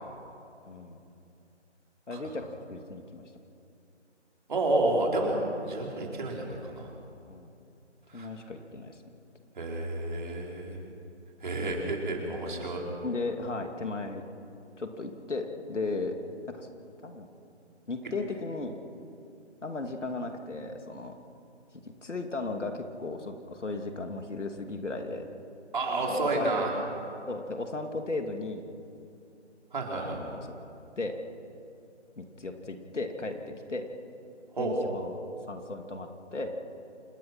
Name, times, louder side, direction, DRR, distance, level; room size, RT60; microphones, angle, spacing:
voice 1, 0.7-1.0 2.1-3.2 7.3-7.5 8.1-9.0 13.0-14.2 14.8-16.1 16.5-16.7 17.0-17.3 17.9-18.8 19.6-21.1 22.0-25.2 26.1-26.7 27.3-28.6 30.0-30.4 31.0-31.2 32.2-33.8 34.6-35.2 35.5-36.5, left 3 dB, 80° left, 5 dB, 2.8 m, -36 dB
voice 2, 4.5-6.9 8.1-8.3 9.6-10.8 11.4-12.8 25.7-26.8 29.7-30.2 34.6-34.8, right 2 dB, 40° right, -1 dB, 4.4 m, -30 dB
27.5 x 20.5 x 5.9 m, 2.6 s
figure-of-eight pair, 170°, 36 cm